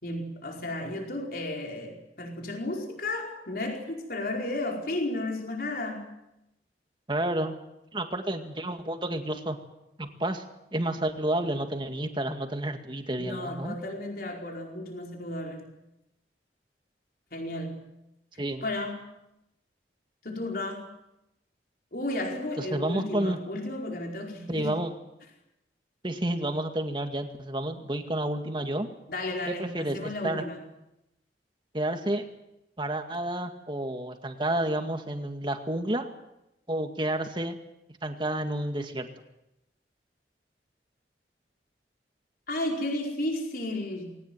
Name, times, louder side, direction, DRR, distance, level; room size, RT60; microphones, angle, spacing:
voice 1, 0.0-6.2 13.1-15.7 17.3-17.9 18.6-19.1 20.2-20.9 21.9-24.8 29.1-30.6 42.5-44.2, left 1 dB, 55° left, 1 dB, 4.9 m, -33 dB
voice 2, 7.1-7.5 7.9-9.6 10.0-10.4 10.7-13.8 18.4-18.6 22.6-23.4 24.5-24.9 26.0-28.9 29.5-30.4 31.7-32.3 32.8-36.1 36.7-37.6 38.0-39.1, right 1 dB, 25° right, 6 dB, 2.1 m, -30 dB
20.5 x 18.5 x 9.3 m, 0.87 s
head